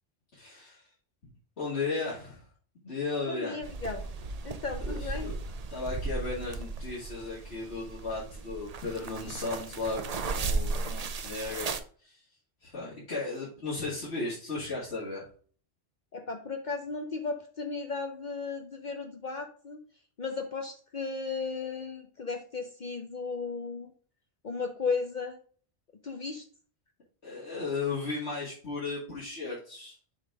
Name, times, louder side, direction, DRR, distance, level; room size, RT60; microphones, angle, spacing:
voice 1, 0.3-0.9 1.6-2.5 2.8-3.6 4.9-5.3 5.7-12.2 12.6-15.3 27.2-30.0, left 3 dB, 85° left, -8 dB, 2.5 m, -35 dB
voice 2, 3.3-4.0 4.4-5.3 16.1-19.8 20.2-23.9 24.4-25.4 26.0-26.4, left 4 dB, 50° left, 4 dB, 0.8 m, -35 dB
sound 1, 3.6-11.8, right 3 dB, 45° right, 0.6 m, -35 dB
7.4 x 3.7 x 4.8 m, 0.43 s
omnidirectional pair, 1.1 m